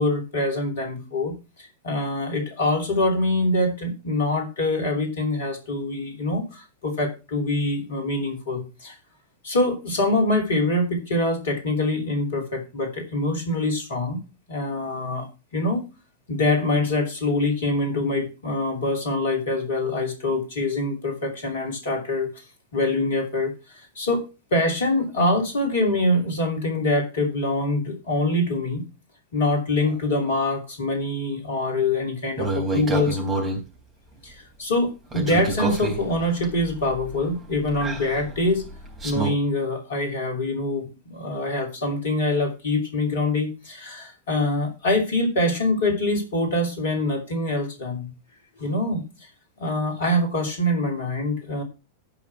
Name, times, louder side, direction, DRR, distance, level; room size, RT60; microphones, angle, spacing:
voice 1, 0.0-9.0 9.4-14.2 14.5-15.3 15.5-15.8 16.3-22.4 22.7-28.9 29.3-33.2 34.2-38.7 39.0-48.1 48.6-49.0 49.6-51.6, left 2 dB, 60° left, 4 dB, 2.9 m, -24 dB
sound 1, 32.4-33.6 35.1-39.3, right 2 dB, 20° right, 3.5 m, -29 dB
11.5 x 5.0 x 6.0 m, 0.29 s
figure-of-eight pair, 90°, 0 cm